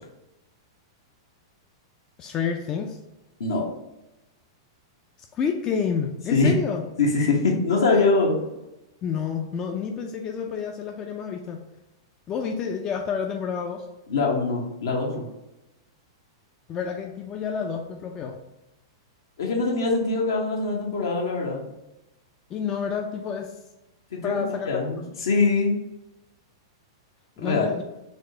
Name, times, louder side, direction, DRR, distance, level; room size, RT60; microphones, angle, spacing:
voice 1, 2.2-3.0 5.3-6.8 9.0-11.6 12.3-13.9 16.7-18.4 22.5-23.5 24.2-24.8 27.4-27.8, left 6 dB, 30° left, 3 dB, 0.4 m, -29 dB
voice 2, 7.0-8.4 14.1-15.2 19.4-21.7 24.1-25.7 27.4-27.7, left 3 dB, 75° left, -1 dB, 1.1 m, -23 dB
4.1 x 2.4 x 4.0 m, 0.96 s
hypercardioid pair, 110°, 2 cm